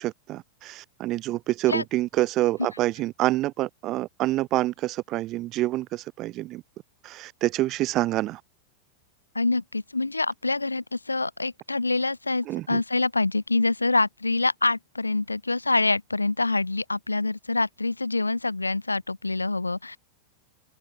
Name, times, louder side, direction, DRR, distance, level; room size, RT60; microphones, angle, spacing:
voice 1, 0.0-6.6 7.0-8.4 12.5-12.8, right 16 dB, 35° right, 0.3 m, -27 dB
voice 2, 9.3-20.0, left 3 dB, 80° left, 1.5 m, -26 dB
open air
figure-of-eight pair, 90°, 0 cm